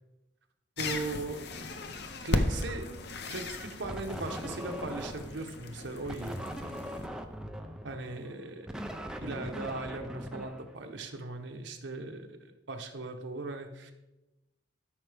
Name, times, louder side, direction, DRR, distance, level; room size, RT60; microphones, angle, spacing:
sound 1, 0.8-7.1, left 2 dB, 60° left, 0.7 m, -36 dB
voice 1, 0.8-1.4 2.2-2.9 3.3-6.4 6.6-6.8 7.8-8.8 9.2-13.9, right 2 dB, 80° right, 4 dB, 1.0 m, -38 dB
sound 2, 3.8-5.5 6.1-11.2, equal, 5° right, 0.5 m, -40 dB
13.0 x 5.6 x 3.4 m, 1.0 s
head